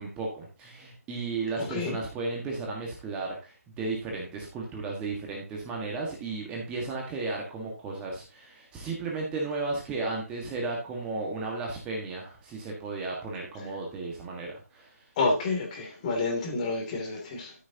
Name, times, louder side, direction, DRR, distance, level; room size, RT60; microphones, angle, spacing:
voice 1, 0.0-15.0, right 3 dB, 10° right, 1.6 m, -34 dB
voice 2, 1.6-2.0 15.2-17.5, left 3 dB, 25° left, 2.7 m, -29 dB
13.0 x 6.4 x 2.9 m
figure-of-eight pair, 155°, 8 cm